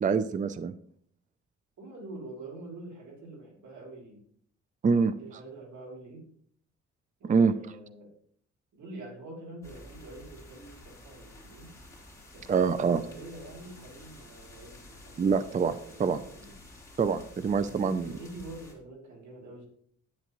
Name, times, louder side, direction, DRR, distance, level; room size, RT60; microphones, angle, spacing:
voice 1, 0.0-0.7 4.8-5.1 7.3-7.5 12.5-13.0 15.2-16.2 17.0-18.1, right 5 dB, 25° right, 13 dB, 0.4 m, -25 dB
voice 2, 1.8-4.2 4.9-6.3 7.2-8.1 8.7-11.7 12.3-15.3 15.8-16.6 17.6-19.7, right 2 dB, 85° right, -1 dB, 3.0 m, -46 dB
sound 1, 9.6-18.7, left 2 dB, 10° left, 3.7 m, -51 dB
10.5 x 9.1 x 3.0 m, 0.62 s
cardioid pair, 105°, 29 cm